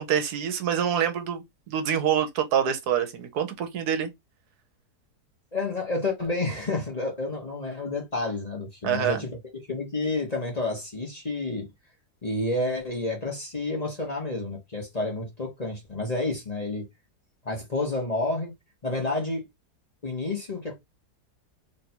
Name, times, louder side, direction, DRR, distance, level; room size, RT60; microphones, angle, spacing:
voice 1, 0.0-4.1 8.8-9.2, right 9 dB, 75° right, 1.3 m, -26 dB
voice 2, 5.5-9.3 9.7-11.7 12.2-16.8 17.4-18.5 18.8-19.4 20.0-20.8, left 2 dB, 30° left, 1.0 m, -29 dB
3.3 x 2.6 x 4.3 m
omnidirectional pair, 1.7 m